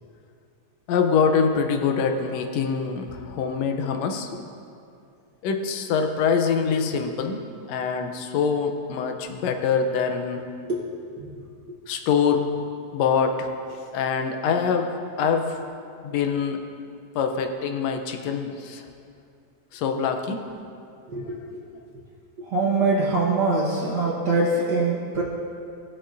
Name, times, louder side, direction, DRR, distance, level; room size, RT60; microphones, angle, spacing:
voice 1, 0.9-4.4 5.4-10.4 11.9-12.5 12.9-13.5 13.9-14.9 15.2-15.6 16.0-16.6 17.1-18.8 19.7-20.5 21.2-21.4, left 6 dB, 75° left, 5 dB, 1.6 m, -24 dB
voice 2, 21.1-21.4 22.4-25.2, right 3 dB, 55° right, -5 dB, 1.2 m, -23 dB
19.0 x 6.7 x 2.6 m, 2.5 s
omnidirectional pair, 3.4 m